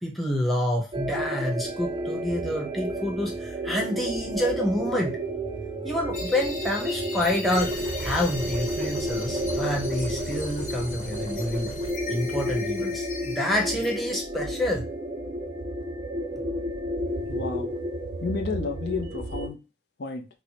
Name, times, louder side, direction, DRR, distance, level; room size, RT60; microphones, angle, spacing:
voice 1, 0.0-5.1 5.8-11.7 12.1-14.8, left 1 dB, ahead, 0 dB, 0.7 m, -28 dB
sound 1, 0.9-19.5, right 1 dB, 25° right, 0.3 m, -31 dB
sound 2, 6.1-14.0, left 4 dB, 45° left, 1.0 m, -39 dB
sound 3, 7.5-11.9, right 2 dB, 80° right, 0.6 m, -41 dB
voice 2, 17.3-17.7 18.2-19.6 20.0-20.3, left 4 dB, 65° left, 5 dB, 0.5 m, -31 dB
4.5 x 2.0 x 2.8 m, 0.29 s
head